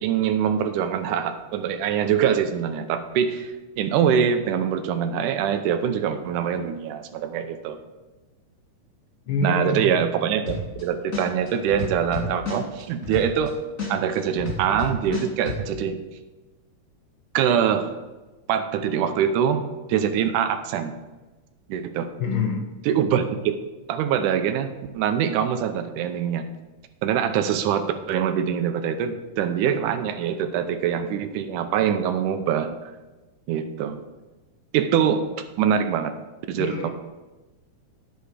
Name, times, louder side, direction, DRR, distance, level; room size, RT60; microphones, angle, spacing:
voice 1, 0.0-7.8 9.4-13.5 13.9-16.0 17.3-17.9 18.5-19.6 19.9-20.9 21.7-22.1 22.9-23.6 23.9-24.7 24.9-26.5 27.0-32.9 33.5-34.0 34.7-35.3 35.6-36.1 36.5-36.9, right 8 dB, 85° right, 8 dB, 2.2 m, -24 dB
voice 2, 9.3-10.0 10.5-10.6 22.2-22.7 36.6-36.9, left 4 dB, 65° left, 2 dB, 1.3 m, -26 dB
sound 1, 10.5-10.8 11.1-13.5 13.8-15.6, left 6 dB, 30° left, 2.2 m, -30 dB
10.5 x 8.2 x 4.9 m, 1.1 s
omnidirectional pair, 3.7 m